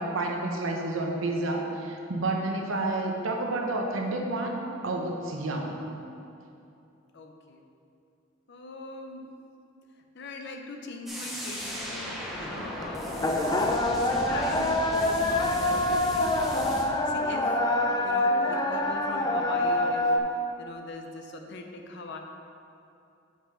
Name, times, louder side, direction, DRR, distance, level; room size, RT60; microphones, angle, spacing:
voice 1, 0.0-4.6 4.8-5.8, right 2 dB, 75° right, 1 dB, 0.9 m, -30 dB
voice 2, 7.1-7.6 8.5-9.2 10.1-17.5 18.0-20.1 20.6-22.2, left 2 dB, 60° left, 4 dB, 0.6 m, -41 dB
sound 1, 11.1-16.8, equal, ahead, 0.8 m, -37 dB
sound 2, 11.6-20.2, left 1 dB, 20° left, 0.4 m, -26 dB
5.5 x 5.0 x 5.6 m, 2.7 s
head